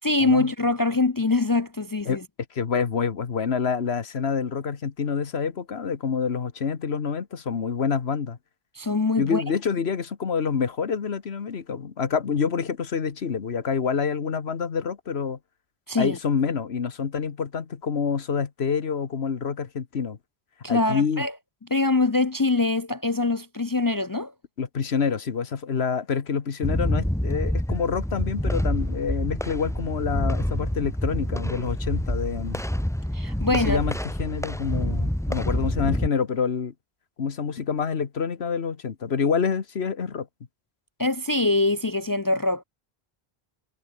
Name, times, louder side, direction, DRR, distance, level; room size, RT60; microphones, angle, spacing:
voice 1, 0.0-2.2 8.7-9.4 15.9-16.2 20.6-21.3 21.7-24.3 33.1-33.8 41.0-42.6, left 3 dB, 30° left, 0.4 m, -23 dB
voice 2, 2.5-8.4 9.2-15.4 16.0-20.2 20.7-21.3 24.6-32.6 33.5-36.7 37.2-40.3, left 6 dB, 85° left, 1.6 m, -27 dB
sound 1, 26.6-36.1, equal, 5° left, 0.8 m, -27 dB
omnidirectional pair, 1.0 m